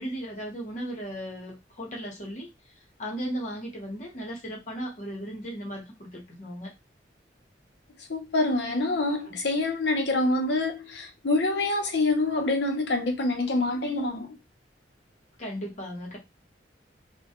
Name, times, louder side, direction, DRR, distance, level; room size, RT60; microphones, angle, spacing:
voice 1, 0.0-2.5 3.0-6.7 9.3-9.4 15.4-16.2, equal, 40° left, 0.9 m, -36 dB
voice 2, 8.1-14.3, left 2 dB, 65° left, 0.6 m, -26 dB
2.1 x 2.1 x 2.8 m
head